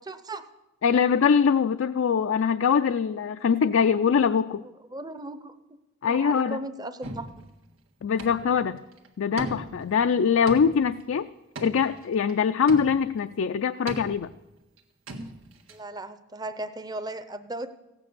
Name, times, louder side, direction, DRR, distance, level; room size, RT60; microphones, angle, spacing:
voice 1, 0.1-0.4 4.9-5.8 6.0-7.4 15.7-17.7, right 2 dB, 20° right, 12 dB, 0.6 m, -37 dB
voice 2, 0.8-4.6 6.0-6.6 8.0-8.8 9.2-11.3 11.6-14.3, left 6 dB, 75° left, 9 dB, 0.4 m, -23 dB
sound 1, 7.0-7.6 8.2-8.7 8.9-9.1 9.4-10.0 10.5-11.0 11.6-12.3 12.7-13.2 13.9-14.4 14.8-14.9 15.1-15.8, right 2 dB, 90° right, 1.7 m, -39 dB
15.5 x 9.1 x 6.8 m, 1.0 s
head